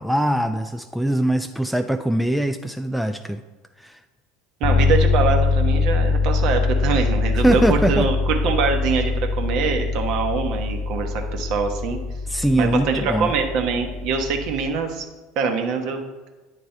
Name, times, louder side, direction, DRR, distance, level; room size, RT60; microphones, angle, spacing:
voice 1, 0.0-3.4 3.8-4.0 7.3-8.1 12.3-13.3, right 1 dB, ahead, 6 dB, 0.3 m, -22 dB
sound 1, 4.6-14.8, left 4 dB, 35° left, 0.8 m, -23 dB
voice 2, 4.6-12.0 12.6-15.0 15.4-16.0, right 5 dB, 55° right, 4 dB, 1.0 m, -24 dB
9.0 x 3.3 x 5.4 m, 1.2 s
figure-of-eight pair, 70°, 0 cm